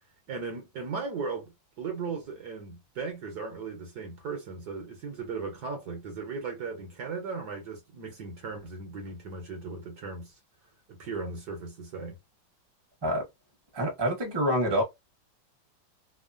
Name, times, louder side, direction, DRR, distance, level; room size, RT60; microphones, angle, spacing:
voice 1, 0.3-10.3 10.9-12.2, right 4 dB, 60° right, 1.3 m, -37 dB
voice 2, 13.7-14.8, equal, 15° right, 0.9 m, -26 dB
3.5 x 2.1 x 2.5 m
omnidirectional pair, 2.1 m